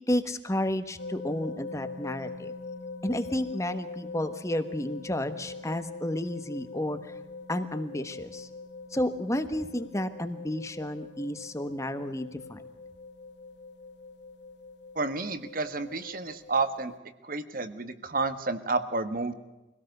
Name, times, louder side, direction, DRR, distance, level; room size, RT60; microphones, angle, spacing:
voice 1, 0.1-2.5 3.0-7.1 7.5-8.5 8.9-12.6, left 1 dB, 15° left, 10 dB, 1.2 m, -31 dB
sound 1, 1.0-17.0, left 3 dB, 65° left, 0.9 m, -43 dB
voice 2, 14.9-16.9 17.2-19.3, right 3 dB, 50° right, 11 dB, 1.4 m, -30 dB
23.5 x 17.5 x 6.7 m, 1.0 s
head